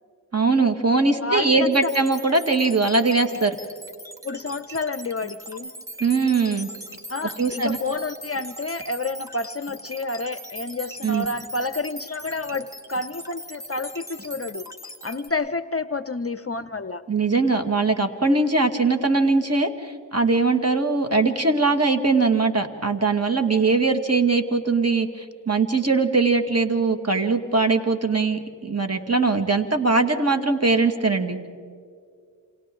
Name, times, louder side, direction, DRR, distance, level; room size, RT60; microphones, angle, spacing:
voice 1, 0.3-3.6 6.0-6.7 7.4-7.8 11.0-11.3 17.1-31.5, right 3 dB, 35° right, 6 dB, 2.0 m, -21 dB
voice 2, 1.2-1.9 4.2-5.7 7.1-14.7 15.0-17.0, left 3 dB, 30° left, 12 dB, 0.7 m, -29 dB
sound 1, 1.7-15.3, equal, 5° right, 2.3 m, -40 dB
29.0 x 26.5 x 3.8 m, 2.2 s
cardioid pair, 45°, 45 cm